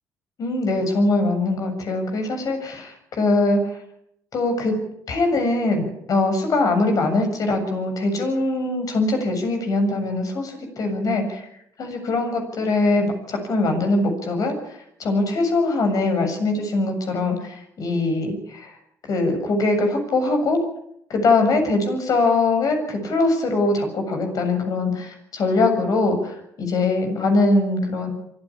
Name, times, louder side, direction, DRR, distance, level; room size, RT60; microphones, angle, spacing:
voice 1, 0.4-3.8 4.3-4.7 5.1-11.5 11.8-18.8 19.0-20.6 21.1-28.1, left 2 dB, 60° left, 5 dB, 7.3 m, -22 dB
24.0 x 15.5 x 8.7 m, 0.75 s
supercardioid pair, 60°, 7 cm